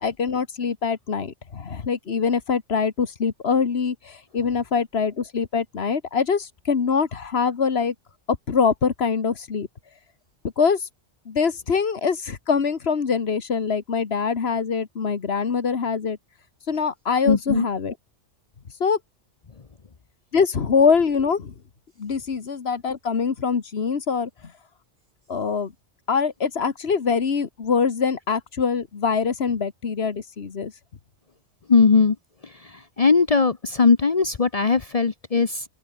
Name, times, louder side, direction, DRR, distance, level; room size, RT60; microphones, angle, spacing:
voice 1, 0.0-7.9 8.5-9.7 10.6-10.8 11.3-16.2 16.7-17.9 18.8-19.0 20.3-21.5 22.0-24.3 25.3-25.7 26.1-30.7, left 5 dB, 60° left, 1.6 m, -23 dB
voice 2, 17.3-17.7 31.7-32.2 33.0-35.6, left 5 dB, 35° left, 0.8 m, -19 dB
open air
omnidirectional pair, 1.2 m